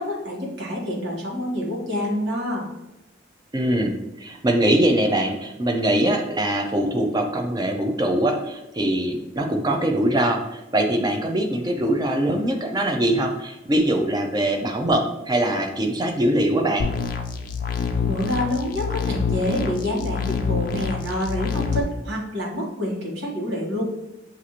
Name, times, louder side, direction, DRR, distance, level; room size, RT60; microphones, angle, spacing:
voice 1, 0.0-2.7 18.0-23.8, left 1 dB, 70° right, -4 dB, 1.2 m, -27 dB
voice 2, 3.5-16.9, right 1 dB, 20° right, 3 dB, 0.4 m, -22 dB
sound 1, 16.8-21.8, left 5 dB, 45° left, 0.3 m, -26 dB
6.2 x 2.5 x 2.8 m, 0.94 s
head